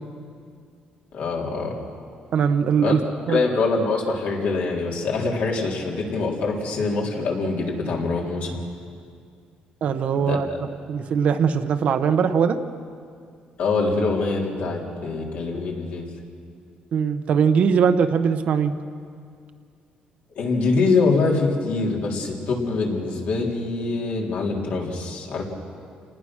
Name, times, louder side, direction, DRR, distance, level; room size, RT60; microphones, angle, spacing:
voice 1, 1.1-1.8 2.8-2.9 3.3-8.6 10.1-10.6 13.6-16.1 20.4-25.4, left 3 dB, 60° left, -1 dB, 3.7 m, -24 dB
voice 2, 2.3-3.0 3.3-3.4 9.8-10.5 10.9-12.6 16.9-18.7, right 6 dB, 50° right, 8 dB, 1.1 m, -20 dB
28.5 x 19.5 x 6.3 m, 2.2 s
cardioid pair, 160°, 3 cm